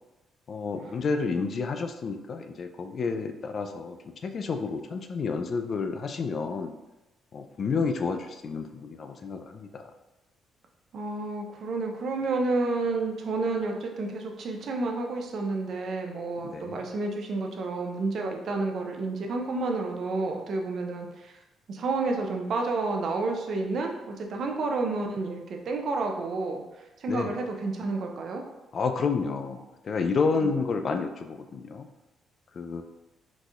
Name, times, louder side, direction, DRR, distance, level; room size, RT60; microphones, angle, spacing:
voice 1, 0.5-6.7 7.3-9.8 16.4-16.9 27.1-27.3 28.7-29.6 29.8-31.9 32.6-32.8, left 4 dB, 50° left, 6 dB, 0.3 m, -30 dB
voice 2, 10.9-21.3 21.7-26.6 27.0-28.4 30.4-30.5, right 3 dB, 60° right, 2 dB, 0.5 m, -30 dB
3.9 x 2.7 x 2.4 m, 1.0 s
cardioid pair, 90°, 0 cm